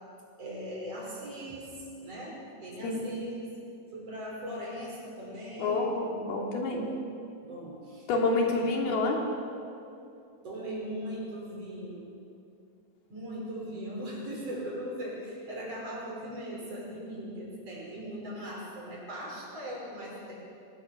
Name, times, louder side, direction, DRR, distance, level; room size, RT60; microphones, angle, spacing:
voice 1, 0.4-1.8 2.0-3.5 3.9-5.9 7.4-8.7 10.4-12.1 13.1-20.4, equal, 40° right, -4 dB, 6.6 m, -39 dB
voice 2, 5.6-6.9 8.1-9.2, left 3 dB, 90° left, 0 dB, 4.8 m, -28 dB
26.5 x 18.0 x 6.6 m, 2.6 s
omnidirectional pair, 4.3 m